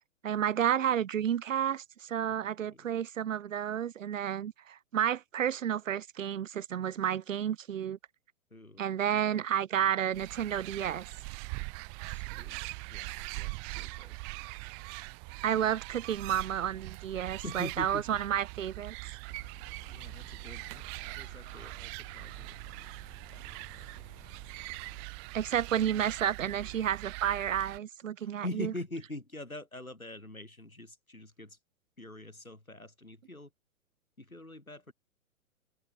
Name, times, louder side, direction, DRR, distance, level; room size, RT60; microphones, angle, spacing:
voice 1, 0.2-8.0 8.8-11.1 15.4-18.9 25.3-28.7, right 9 dB, 70° right, 0.6 m, -31 dB
voice 2, 2.4-2.9 8.5-9.4 12.0-14.2 17.2-18.2 19.9-22.9 23.3-24.2 28.2-31.6 32.0-33.5 34.2-34.9, left 1 dB, 90° left, 3.1 m, -44 dB
sound 1, 10.1-27.8, right 40 dB or more, 25° right, 1.5 m, -42 dB
sound 2, 19.3-25.1, left 12 dB, 20° left, 7.0 m, -58 dB
figure-of-eight pair, 115°, 41 cm